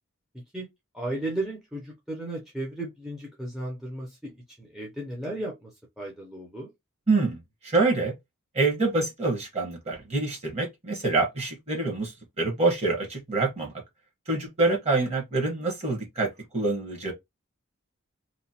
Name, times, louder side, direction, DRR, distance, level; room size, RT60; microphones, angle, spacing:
voice 1, 0.9-5.7 6.0-6.7, right 1 dB, ahead, 0.6 m, -35 dB
voice 2, 7.1-8.1 8.5-13.7 14.3-16.3 16.5-17.1, right 3 dB, 30° right, 1.2 m, -26 dB
2.9 x 2.2 x 2.8 m
head